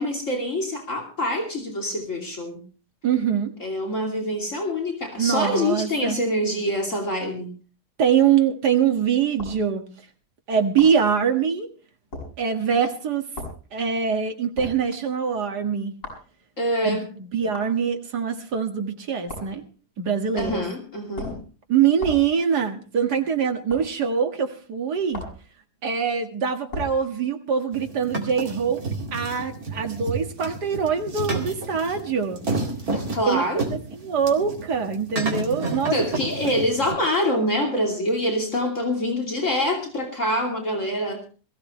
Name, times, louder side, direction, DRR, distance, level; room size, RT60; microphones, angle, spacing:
voice 1, 0.0-2.6 3.6-7.5 16.6-17.1 20.4-21.3 32.9-33.7 35.9-41.2, left 1 dB, 50° left, 1 dB, 3.2 m, -25 dB
voice 2, 3.0-3.5 5.2-6.2 8.0-9.8 10.5-11.7 12.4-13.3 13.7-16.0 16.8-19.6 20.0-20.6 21.7-25.2 25.8-28.8 29.1-32.4 33.2-36.0, right 7 dB, 85° right, 5 dB, 2.3 m, -23 dB
sound 1, 9.4-9.6 10.8-11.0 12.1-12.3 13.4-13.6 14.6-14.8 16.0-16.3 17.5-17.7 19.3-19.6 20.4-20.7 21.2-21.5 22.0-22.3 23.7-23.9 25.1-25.4 26.7-27.0, left 2 dB, 75° left, 6.7 m, -35 dB
sound 2, 27.7-36.9, right 2 dB, 65° right, 2.9 m, -31 dB
21.5 x 15.5 x 3.1 m, 0.35 s
omnidirectional pair, 1.7 m